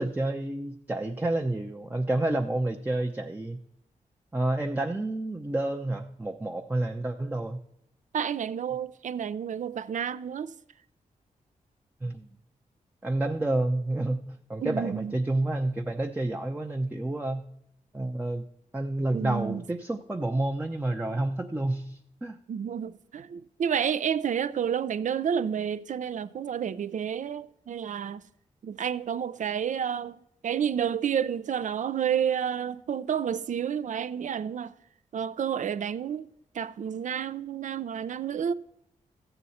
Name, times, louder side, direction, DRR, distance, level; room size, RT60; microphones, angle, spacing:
voice 1, 0.0-3.6 4.3-7.6 12.0-12.3 13.0-17.4 17.9-18.4 18.7-22.4, right 2 dB, 10° right, 0.7 m, -29 dB
voice 2, 8.1-10.5 14.6-15.1 19.1-19.6 22.5-28.2 28.6-34.7 35.1-38.5, right 8 dB, 65° right, 0.5 m, -30 dB
14.0 x 7.9 x 4.2 m
cardioid pair, 75°, 14 cm